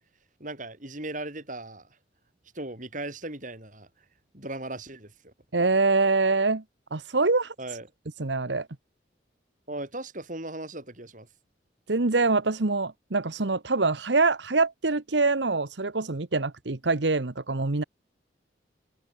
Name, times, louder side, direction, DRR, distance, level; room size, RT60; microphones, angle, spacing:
voice 1, 0.4-1.9 2.5-3.9 4.3-5.3 7.6-7.9 9.7-11.3, right 2 dB, 45° right, 6.7 m, -37 dB
voice 2, 5.5-6.6 6.9-7.5 8.2-8.7 11.9-17.8, right 3 dB, 80° right, 1.3 m, -24 dB
head